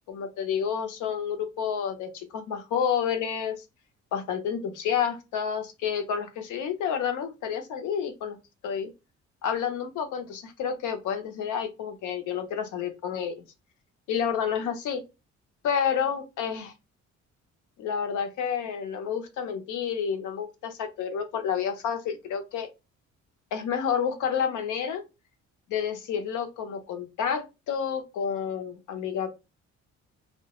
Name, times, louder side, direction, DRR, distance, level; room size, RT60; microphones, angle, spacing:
voice 1, 0.1-3.6 4.1-8.4 8.6-8.9 9.4-13.4 14.1-15.0 15.6-16.7 17.8-22.7 23.5-25.0 25.7-29.3, left 7 dB, 80° left, 7 dB, 0.6 m, -29 dB
2.2 x 2.1 x 2.8 m, 0.26 s
cardioid pair, 90°, 30 cm